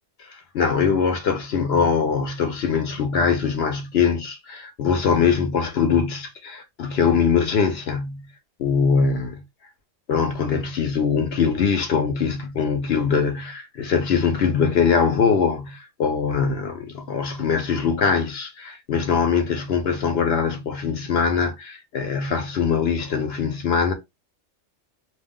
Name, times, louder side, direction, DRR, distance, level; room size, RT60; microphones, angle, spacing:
voice 1, 0.2-8.3 8.6-9.4 10.1-23.9, left 6 dB, 65° left, 0.8 m, -22 dB
2.5 x 2.0 x 3.5 m
omnidirectional pair, 1.3 m